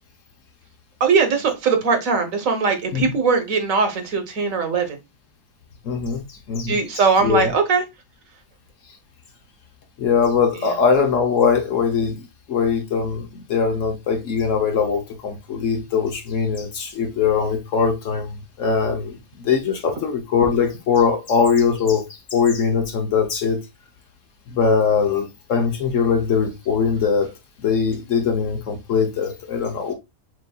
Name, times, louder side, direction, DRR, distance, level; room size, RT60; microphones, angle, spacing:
voice 1, 1.0-5.0 6.7-7.8, right 5 dB, 60° right, 1.3 m, -20 dB
voice 2, 5.8-6.8 7.2-7.5 10.0-12.2 12.5-22.0 22.3-23.6 24.5-27.3 27.6-29.9, left 6 dB, 60° left, 1.0 m, -21 dB
6.3 x 2.6 x 2.2 m
omnidirectional pair, 1.7 m